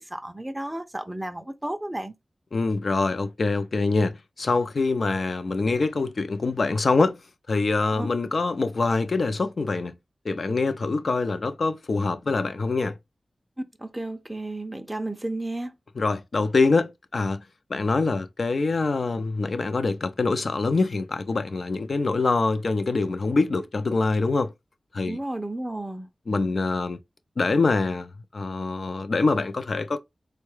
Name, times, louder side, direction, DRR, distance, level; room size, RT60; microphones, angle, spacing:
voice 1, 0.0-2.1 8.0-8.1 13.6-15.7 25.1-26.1, right 1 dB, 10° right, 0.4 m, -33 dB
voice 2, 2.5-7.2 7.5-9.9 10.2-13.0 16.0-17.4 17.7-24.5 24.9-25.2 26.3-27.0 27.4-30.0, left 3 dB, 65° left, 0.4 m, -24 dB
3.6 x 2.2 x 3.1 m
wide cardioid pair, 80°, 0 cm